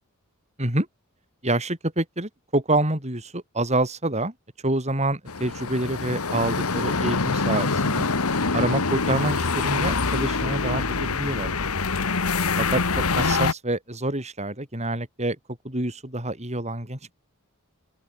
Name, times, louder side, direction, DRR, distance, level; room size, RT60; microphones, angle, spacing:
voice 1, 1.4-4.3 4.6-8.0 8.5-11.5 12.4-15.4 15.6-17.0, right 2 dB, 30° right, 6.6 m, -27 dB
sound 1, 5.3-13.5, left 4 dB, 75° left, 1.6 m, -25 dB
open air
head